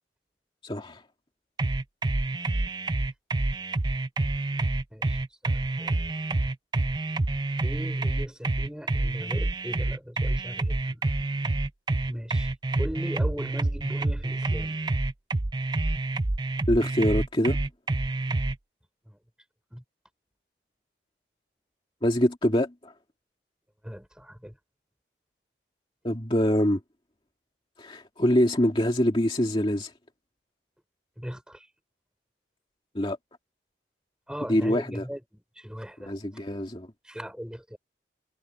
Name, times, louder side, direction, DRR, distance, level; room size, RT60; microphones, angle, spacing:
voice 1, 0.6-1.0 16.7-17.6 22.0-22.9 26.0-26.8 27.8-29.9 32.9-33.2 34.5-35.0 36.1-36.9, equal, 30° left, 2.3 m, -24 dB
sound 1, 1.6-18.6, right 2 dB, 25° right, 0.5 m, -27 dB
voice 2, 4.9-6.0 7.6-11.1 12.1-12.5 12.8-14.8 19.1-19.2 19.7-19.8 23.8-24.6 31.2-31.7 34.3-36.2 37.0-37.8, equal, 5° right, 5.3 m, -39 dB
head